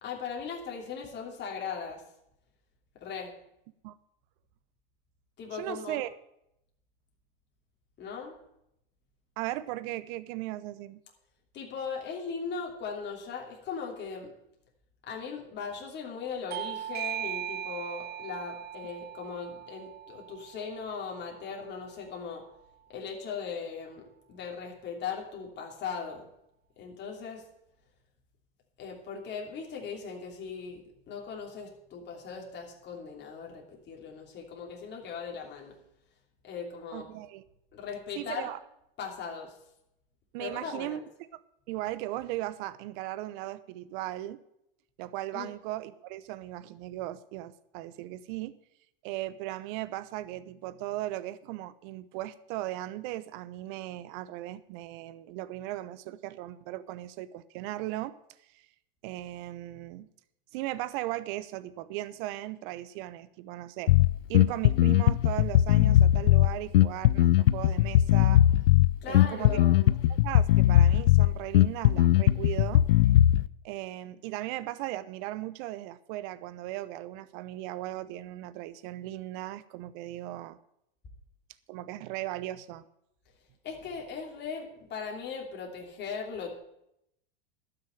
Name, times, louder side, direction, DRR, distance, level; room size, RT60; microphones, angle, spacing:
voice 1, 0.0-2.0 3.0-3.4 5.4-6.0 8.0-8.4 11.5-14.3 15.0-22.5 22.9-26.3 26.8-27.5 28.8-35.8 36.4-37.1 37.7-38.5 39.0-39.6 40.4-41.0 45.3-45.5 69.0-69.9 83.6-86.6, left 5 dB, 35° left, 0 dB, 3.0 m, -39 dB
voice 2, 5.5-6.1 9.4-11.0 36.9-37.4 38.1-38.6 40.3-41.0 41.7-44.4 45.0-48.6 49.0-58.1 58.5-58.6 59.0-60.1 60.5-63.9 64.3-68.4 69.1-69.6 70.2-72.8 73.6-80.6 81.7-82.9, right 16 dB, 60° right, 16 dB, 0.9 m, -37 dB
Bell / Doorbell, 16.5-21.7, right 11 dB, 35° right, 0.7 m, -39 dB
Bass guitar, 63.9-73.5, left 13 dB, 85° left, 0.5 m, -20 dB
12.0 x 6.5 x 8.8 m, 0.79 s
hypercardioid pair, 105°, 29 cm